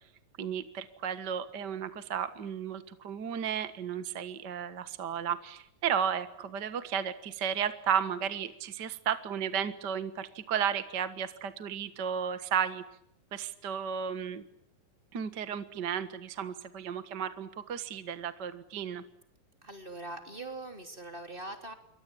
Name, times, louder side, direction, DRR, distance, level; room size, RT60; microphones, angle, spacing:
voice 1, 0.4-12.8 13.3-14.4 15.1-19.0, right 8 dB, 45° right, 11 dB, 1.5 m, -33 dB
voice 2, 19.6-21.7, right 2 dB, 15° right, 6 dB, 3.0 m, -42 dB
27.5 x 24.0 x 8.8 m, 0.73 s
omnidirectional pair, 3.9 m